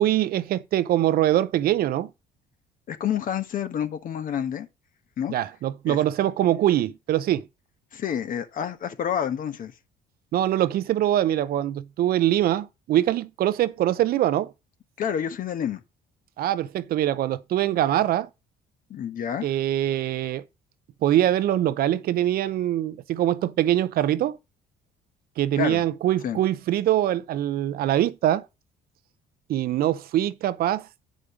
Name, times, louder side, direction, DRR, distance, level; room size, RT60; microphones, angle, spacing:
voice 1, 0.0-2.1 5.3-7.5 10.3-14.5 16.4-18.3 19.4-20.4 21.0-24.4 25.4-28.5 29.5-30.9, right 12 dB, 60° right, 0.6 m, -23 dB
voice 2, 2.9-4.7 5.2-5.3 5.9-6.0 7.9-9.7 15.0-15.8 18.9-19.5 25.5-25.8 26.2-26.4, left 9 dB, 55° left, 1.2 m, -28 dB
8.4 x 5.0 x 4.9 m
cardioid pair, 110°, 17 cm